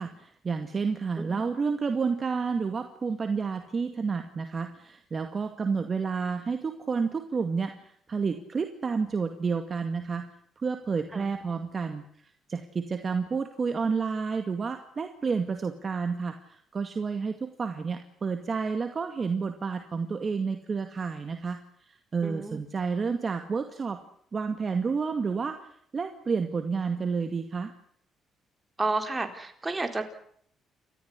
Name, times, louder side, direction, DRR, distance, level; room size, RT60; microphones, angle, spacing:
voice 1, 0.0-10.3 10.6-21.6 21.9-24.0 24.3-27.7, right 5 dB, 40° right, 7 dB, 2.1 m, -30 dB
voice 2, 22.2-22.6 28.8-30.0, right 3 dB, 20° right, 7 dB, 4.2 m, -31 dB
29.0 x 14.0 x 9.7 m, 0.65 s
cardioid pair, 90°, 0 cm